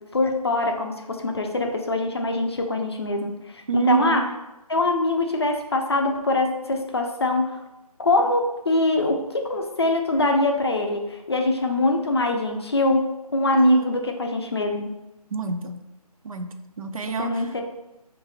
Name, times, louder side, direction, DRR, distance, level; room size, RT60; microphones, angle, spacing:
voice 1, 0.0-4.2 4.7-7.5 8.0-14.9 17.0-17.6, left 2 dB, 40° left, 3 dB, 0.4 m, -24 dB
voice 2, 3.7-4.3 13.5-13.8 15.3-15.8 16.2-17.5, right 4 dB, 60° right, 7 dB, 0.5 m, -24 dB
4.5 x 2.5 x 3.1 m, 0.96 s
figure-of-eight pair, 165°, 20 cm